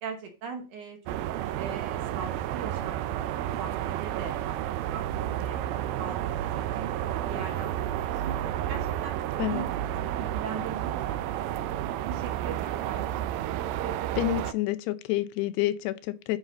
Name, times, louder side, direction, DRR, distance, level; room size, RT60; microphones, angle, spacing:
voice 1, 0.0-1.2 1.6-4.6 4.9-5.1 5.4-6.9 7.3-8.3 8.7-9.2 9.5-9.6 10.2-13.6, right 5 dB, 65° right, 2.2 m, -41 dB
sound 1, 1.1-14.5, right 12 dB, 80° right, 2.1 m, -31 dB
voice 2, 14.2-16.4, left 16 dB, 90° left, 2.8 m, -28 dB
9.8 x 5.7 x 3.9 m
omnidirectional pair, 4.7 m